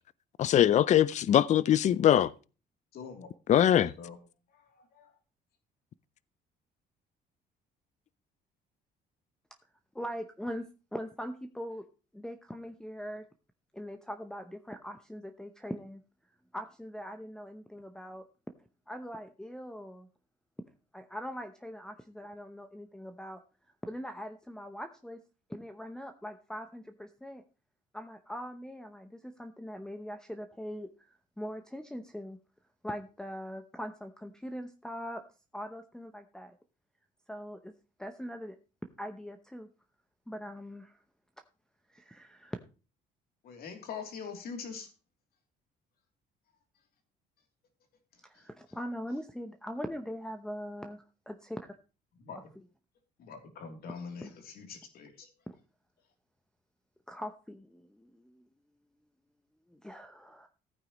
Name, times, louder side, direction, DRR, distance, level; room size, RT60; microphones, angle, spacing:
voice 1, 0.4-2.3 3.5-3.9, left 11 dB, 45° left, 0.5 m, -22 dB
voice 2, 2.9-3.3 3.7-4.2 4.5-5.1 43.4-44.9 48.3-48.5 52.2-52.4 53.2-55.3, left 6 dB, 65° left, 3.1 m, -44 dB
voice 3, 9.9-11.8 12.1-13.2 13.7-16.0 16.5-18.2 18.9-20.1 20.9-23.4 23.8-25.2 25.5-27.4 27.9-30.9 31.4-32.4 32.8-35.2 35.5-36.6 37.3-37.7 38.0-38.6 39.0-39.7 40.3-41.0 41.9-42.6 48.3-51.7 52.3-52.4 54.2-54.3 57.1-58.4 59.7-60.5, equal, 5° left, 0.8 m, -41 dB
15.0 x 9.0 x 3.1 m
cardioid pair, 110°, 17 cm